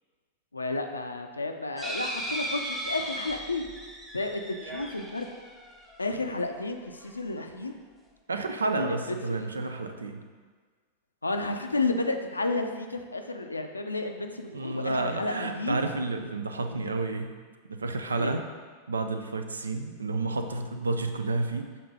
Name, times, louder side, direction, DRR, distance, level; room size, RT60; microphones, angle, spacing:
voice 1, 0.5-3.7 4.1-5.3 6.0-7.7 8.7-9.5 11.2-15.8 16.7-16.8 18.2-18.4, left 2 dB, 80° left, 6 dB, 0.4 m, -32 dB
sound 1, 1.8-6.4 7.0-7.1 7.4-7.5, right 1 dB, 10° right, 0.8 m, -37 dB
voice 2, 8.3-10.2 14.5-17.3 17.7-18.4 18.9-21.7, right 3 dB, 75° right, 7 dB, 0.4 m, -30 dB
6.7 x 3.9 x 3.7 m, 1.5 s
figure-of-eight pair, 90°, 0 cm